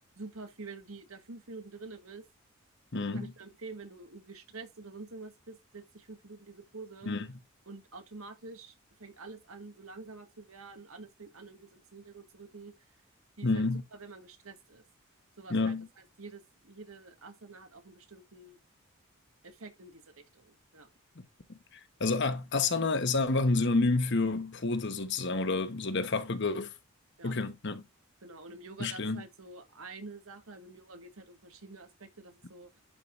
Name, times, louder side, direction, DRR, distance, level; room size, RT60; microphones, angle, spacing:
voice 1, 0.2-2.3 3.1-7.1 7.7-12.9 13.4-14.8 15.4-18.6 19.4-20.9 26.0-26.1 27.2-27.4 28.2-32.8, right 3 dB, 75° right, 1.7 m, -48 dB
voice 2, 2.9-3.3 7.1-7.3 13.4-13.8 15.5-15.9 21.2-21.3 21.7-26.7 27.2-27.8 28.8-29.2, left 3 dB, 55° left, 1.1 m, -29 dB
11.5 x 4.9 x 2.5 m
head